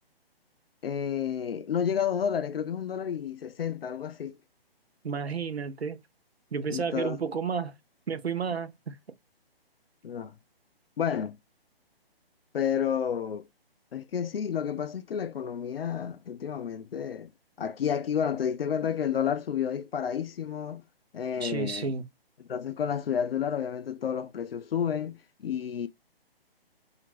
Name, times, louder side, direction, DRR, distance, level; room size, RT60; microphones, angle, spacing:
voice 1, 0.8-4.4 6.7-7.2 10.0-10.4 11.0-11.4 12.5-13.5 13.9-17.3 17.6-20.8 21.1-21.9 22.5-25.9, left 8 dB, 70° left, 0.4 m, -30 dB
voice 2, 5.0-6.0 6.5-7.7 8.1-8.9 21.4-22.0, right 6 dB, 90° right, 0.6 m, -31 dB
2.5 x 2.5 x 2.9 m
figure-of-eight pair, 140°, 31 cm